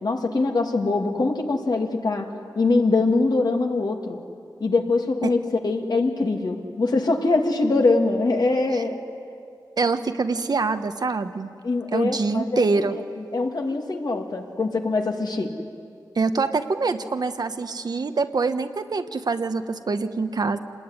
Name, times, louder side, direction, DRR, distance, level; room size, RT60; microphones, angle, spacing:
voice 1, 0.0-2.3 2.6-4.2 4.6-5.4 5.6-9.0 11.6-15.5, left 3 dB, 65° left, 2 dB, 2.5 m, -23 dB
voice 2, 9.8-11.5 11.9-13.0 16.1-20.6, right 4 dB, 60° right, 9 dB, 1.1 m, -25 dB
26.5 x 20.0 x 9.8 m, 2.3 s
wide cardioid pair, 105°, 8 cm